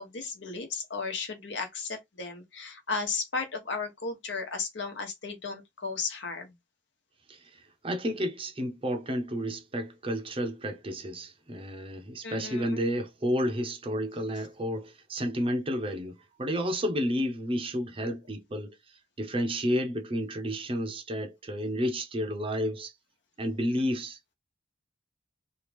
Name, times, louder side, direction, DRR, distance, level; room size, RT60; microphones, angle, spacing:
voice 1, 0.0-6.5 12.2-12.8, left 4 dB, 65° left, 1.1 m, -35 dB
voice 2, 7.8-18.7 19.2-22.9 23.4-24.2, equal, 30° right, 0.6 m, -31 dB
3.0 x 2.4 x 3.3 m
head